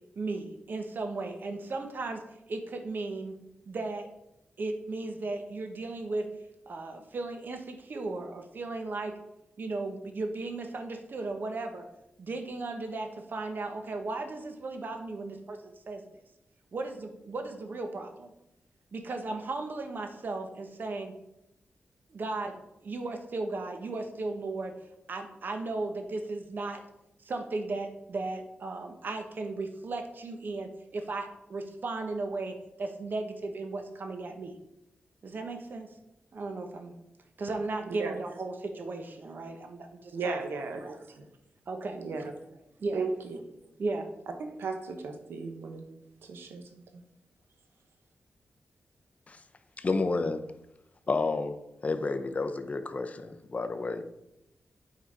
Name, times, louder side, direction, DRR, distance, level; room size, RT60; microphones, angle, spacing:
voice 1, 0.1-2.2 2.5-3.4 3.7-4.1 4.6-6.3 6.7-9.2 9.6-11.8 12.2-16.0 16.7-18.3 18.9-21.1 22.1-24.7 25.1-26.8 27.2-34.5 35.2-35.9 36.3-36.9 37.4-40.4 40.8-41.0 41.7-42.0 42.8-43.0 43.8-44.1, right 3 dB, 60° right, 5 dB, 1.1 m, -36 dB
voice 2, 37.9-38.2 40.1-41.3 42.0-42.3 42.9-43.4 44.4-45.8 46.2-46.7, right 4 dB, 90° right, 5 dB, 1.1 m, -36 dB
voice 3, 49.8-50.5 51.1-51.6 51.8-54.0, left 3 dB, 40° left, 8 dB, 0.7 m, -30 dB
8.9 x 4.0 x 5.1 m, 0.87 s
cardioid pair, 75°, 4 cm